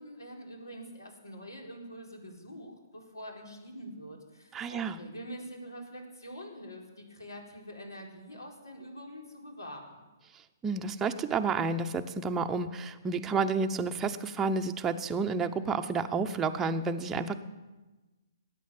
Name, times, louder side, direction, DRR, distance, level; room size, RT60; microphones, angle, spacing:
voice 1, 0.0-10.0, equal, 80° left, 1 dB, 4.7 m, -45 dB
voice 2, 4.5-5.0 10.6-17.4, right 4 dB, 15° right, 5 dB, 0.9 m, -30 dB
20.0 x 9.3 x 7.2 m, 1.2 s
figure-of-eight pair, 130°, 2 cm